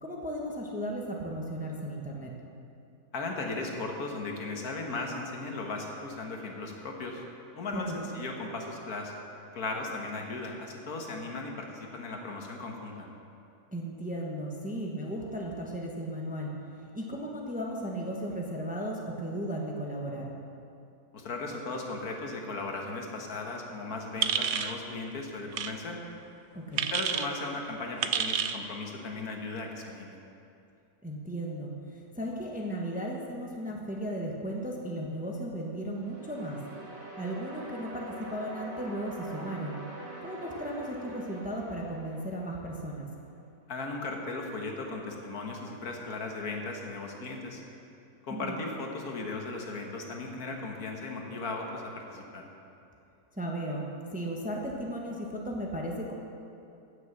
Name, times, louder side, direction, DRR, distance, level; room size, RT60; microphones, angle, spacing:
voice 1, 0.0-2.3 7.7-8.0 13.7-16.5 16.9-20.3 26.5-26.8 31.0-36.6 37.2-39.8 40.2-43.1 48.3-48.5 53.3-53.9 54.1-56.1, right 1 dB, 5° right, -1 dB, 1.1 m, -35 dB
voice 2, 3.1-7.2 7.5-9.1 9.5-13.1 21.1-26.0 26.7-30.2 43.7-47.6 48.2-52.5, left 3 dB, 70° left, 1 dB, 1.8 m, -37 dB
sound 1, 24.2-24.8 25.5-25.7 26.8-27.3 28.0-28.6, right 8 dB, 60° right, 0.7 m, -29 dB
sound 2, 35.9-42.9, right 2 dB, 45° right, 2.9 m, -44 dB
16.0 x 6.7 x 6.5 m, 2.6 s
omnidirectional pair, 1.7 m